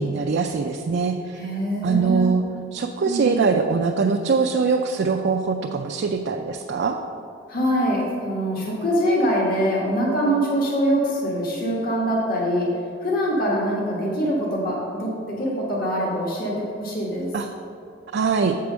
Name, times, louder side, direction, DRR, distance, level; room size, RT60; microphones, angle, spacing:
voice 1, 0.0-1.4 1.8-2.4 2.7-7.0 17.3-17.5 18.1-18.6, right 4 dB, 60° right, 3 dB, 0.4 m, -22 dB
voice 2, 1.3-2.3 3.0-3.4 7.5-12.7 13.0-17.3, equal, 50° left, -3 dB, 1.5 m, -24 dB
7.5 x 4.7 x 6.2 m, 2.5 s
head